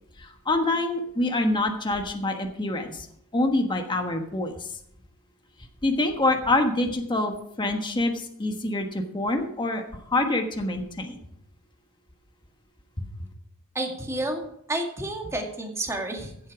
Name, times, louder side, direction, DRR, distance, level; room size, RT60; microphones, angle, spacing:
voice 1, 0.2-3.1 3.3-4.8 5.8-11.2 13.0-13.1, left 2 dB, 20° left, 4 dB, 1.3 m, -26 dB
voice 2, 13.7-16.5, right 1 dB, 15° right, 2 dB, 2.1 m, -31 dB
15.5 x 8.3 x 4.8 m, 0.71 s
head